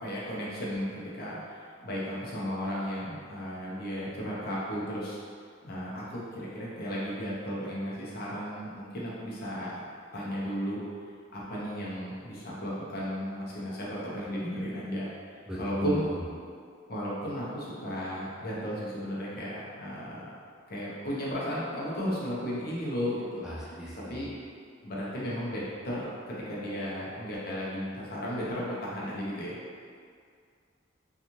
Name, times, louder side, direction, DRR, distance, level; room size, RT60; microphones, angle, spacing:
voice 1, 0.0-5.2 5.6-9.8 10.1-10.8 11.3-16.1 16.9-20.3 20.7-23.7 24.1-24.3 24.8-29.6, equal, 55° left, -6 dB, 0.7 m, -34 dB
voice 2, 15.5-16.2 23.4-24.3, equal, 5° right, -8 dB, 0.4 m, -36 dB
2.9 x 2.4 x 2.5 m, 2.2 s
head